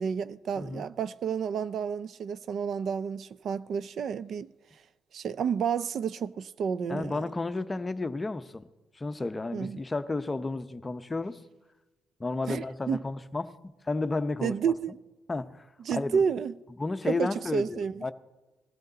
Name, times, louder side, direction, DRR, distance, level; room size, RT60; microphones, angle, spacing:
voice 1, 0.0-4.5 5.1-7.2 9.5-9.8 12.5-13.0 14.4-14.9 15.8-16.5 17.1-18.0, right 7 dB, 65° right, 0.4 m, -30 dB
voice 2, 6.9-8.6 8.9-11.4 12.2-13.5 13.8-14.6 15.3-16.2 16.8-18.1, left 3 dB, 20° left, 0.7 m, -32 dB
19.5 x 13.5 x 4.0 m
cardioid pair, 90°, 0 cm